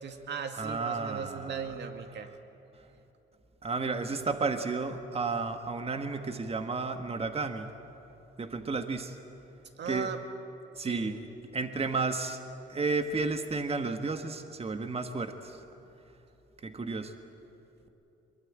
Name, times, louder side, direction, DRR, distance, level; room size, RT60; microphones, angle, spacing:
voice 1, 0.0-2.3 9.8-10.2 10.8-11.2, right 6 dB, 60° right, 6 dB, 2.2 m, -38 dB
voice 2, 0.6-1.7 3.6-7.7 8.4-9.2 9.9-10.1 10.7-11.2 11.5-12.4 12.7-15.6 16.6-17.1, right 4 dB, 30° right, 7 dB, 1.6 m, -32 dB
23.0 x 22.0 x 8.8 m, 3.0 s
cardioid pair, 90°, 20 cm